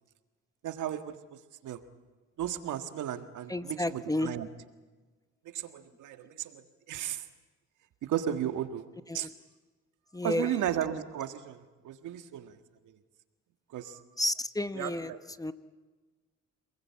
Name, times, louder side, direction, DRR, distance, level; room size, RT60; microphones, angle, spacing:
voice 1, 0.6-1.8 2.4-4.5 5.4-7.3 8.0-8.8 9.1-9.3 10.2-12.6 13.7-14.0 14.7-15.2, right 10 dB, 80° right, 9 dB, 1.7 m, -35 dB
voice 2, 3.5-4.3 9.1-9.3 10.1-10.5 14.2-15.1 15.4-15.5, left 1 dB, 10° left, 13 dB, 0.9 m, -31 dB
27.0 x 20.5 x 8.6 m, 1.3 s
cardioid pair, 90°, 30 cm